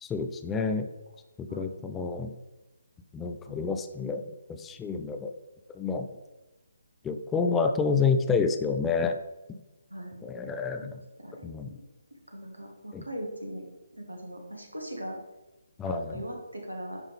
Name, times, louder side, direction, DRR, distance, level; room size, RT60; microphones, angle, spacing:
voice 1, 0.0-0.9 1.4-2.3 3.1-4.2 4.5-5.3 5.7-6.1 7.0-9.2 10.2-11.0 11.4-11.8 12.9-13.0 15.8-16.2, left 5 dB, 10° left, 6 dB, 0.3 m, -29 dB
voice 2, 11.2-11.8 12.3-13.7 13.9-15.2 15.9-17.0, equal, 80° right, 2 dB, 1.6 m, -40 dB
10.5 x 3.6 x 3.3 m, 1.0 s
figure-of-eight pair, 140°, 0 cm